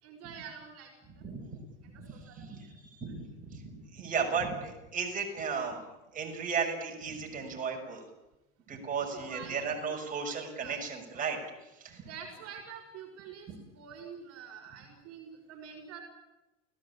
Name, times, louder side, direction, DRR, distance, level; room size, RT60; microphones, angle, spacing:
voice 1, 0.0-1.5 1.8-2.5 9.0-10.3 10.6-11.3 12.1-16.0, right 7 dB, 40° right, 2 dB, 5.8 m, -47 dB
voice 2, 1.9-5.8 6.1-8.1 8.7-12.1 13.5-13.6, right 5 dB, 20° right, 0 dB, 6.6 m, -35 dB
29.5 x 17.5 x 8.7 m, 0.98 s
supercardioid pair, 130°, 38 cm